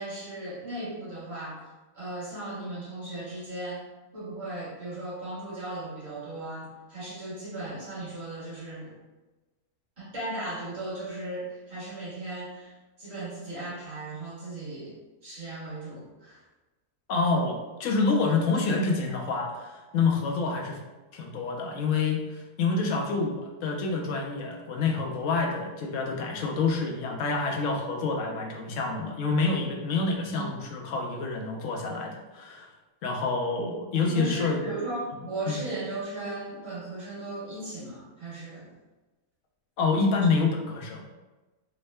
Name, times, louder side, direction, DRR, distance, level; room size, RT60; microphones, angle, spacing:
voice 1, 0.0-1.6 1.9-3.9 4.1-9.0 10.0-14.9 15.2-16.4 30.3-30.5 33.7-33.8 34.1-38.7 40.2-40.3, right 2 dB, 45° right, -9 dB, 1.7 m, -37 dB
voice 2, 17.1-20.8 21.1-32.7 33.0-34.7 35.5-35.6 39.8-41.0, left 4 dB, 70° left, 0 dB, 0.8 m, -27 dB
3.5 x 2.1 x 3.2 m, 1.2 s
omnidirectional pair, 1.6 m